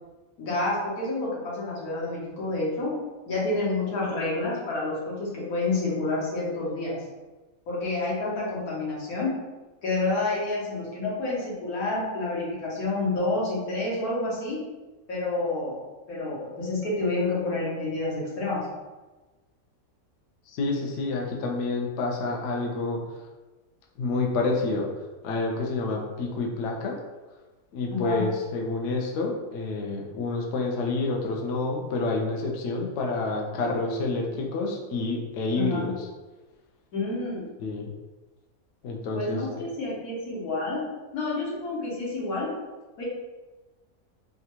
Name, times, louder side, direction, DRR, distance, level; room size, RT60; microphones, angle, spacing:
voice 1, 0.4-2.9 3.3-7.0 7.7-9.4 9.8-14.6 15.1-15.8 16.1-18.7 27.9-28.3 35.6-35.9 36.9-37.5 39.1-40.8 41.1-42.5 43.0-43.1, left 2 dB, 90° left, -6 dB, 1.5 m, -29 dB
voice 2, 20.5-23.0 24.0-24.9 25.2-27.0 27.7-36.0 37.6-37.9 38.8-39.4, left 3 dB, 65° left, 0 dB, 0.8 m, -28 dB
3.6 x 2.3 x 2.8 m, 1.2 s
omnidirectional pair, 1.5 m